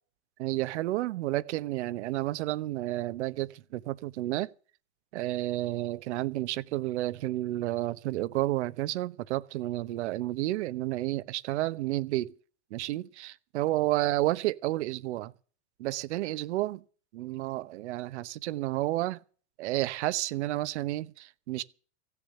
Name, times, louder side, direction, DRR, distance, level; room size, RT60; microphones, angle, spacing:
voice 1, 0.4-4.5 5.1-12.3 12.7-15.3 15.8-16.8 17.1-19.2 19.6-21.6, right 16 dB, 75° right, 1.0 m, -31 dB
15.5 x 7.1 x 9.7 m
supercardioid pair, 140°, 35 cm